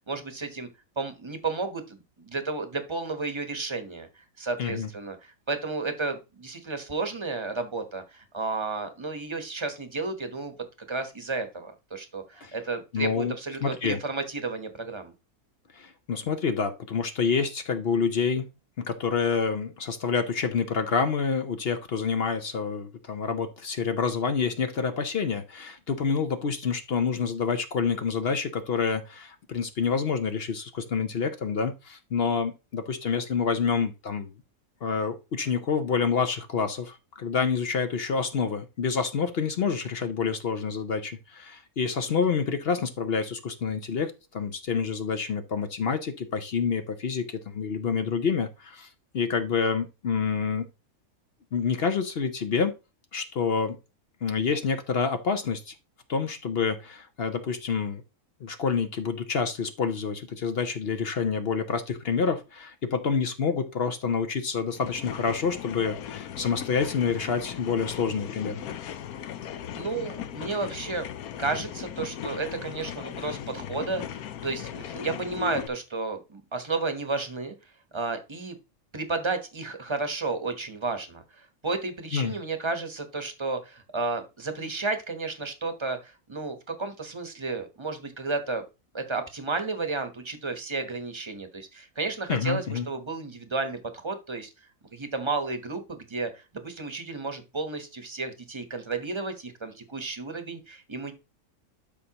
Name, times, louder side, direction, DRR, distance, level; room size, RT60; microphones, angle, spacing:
voice 1, 0.1-0.7 1.0-10.5 10.9-15.1 69.7-71.1 71.4-77.5 77.9-78.6 78.9-88.6 88.9-94.5 94.9-101.1, right 3 dB, 20° right, 0.9 m, -32 dB
voice 2, 12.9-13.3 13.6-14.0 15.7-18.5 18.8-34.3 34.8-48.9 49.1-50.7 51.5-52.7 53.1-53.8 54.2-55.7 56.1-58.0 58.4-68.6 82.1-82.3 92.3-92.9, left 5 dB, 55° left, 0.7 m, -28 dB
sound 1, 64.7-75.7, left 9 dB, 80° left, 1.1 m, -38 dB
12.0 x 5.4 x 2.9 m
omnidirectional pair, 1.6 m